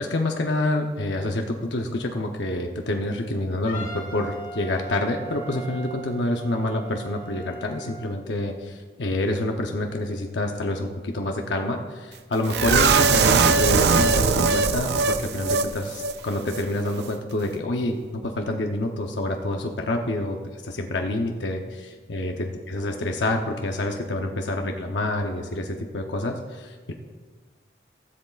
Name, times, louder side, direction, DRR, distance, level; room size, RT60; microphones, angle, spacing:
voice 1, 0.0-26.9, left 1 dB, 85° left, 3 dB, 0.8 m, -27 dB
Wind instrument woodwind instrument, 3.7-8.1, right 3 dB, 45° left, 1.8 m, -40 dB
sound 1, 12.5-15.7 16.0-16.1 16.5-16.6, right 4 dB, 70° right, 0.5 m, -20 dB
16.5 x 7.8 x 2.4 m, 1.4 s
head